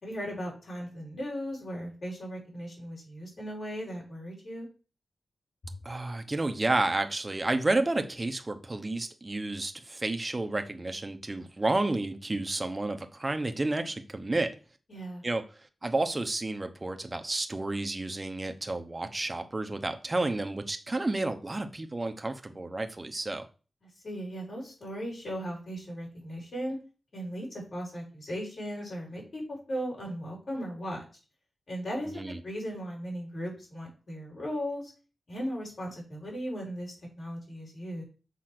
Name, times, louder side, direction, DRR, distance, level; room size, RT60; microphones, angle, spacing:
voice 1, 0.0-4.7 14.9-15.2 24.0-26.8 27.1-31.0 31.7-34.9 35.3-38.0, equal, 55° left, 4.8 m, -37 dB
voice 2, 5.8-14.5 15.2-15.4 15.8-23.5 32.1-32.4, right 2 dB, 20° right, 1.0 m, -31 dB
6.7 x 5.0 x 6.1 m
wide cardioid pair, 145°, 0 cm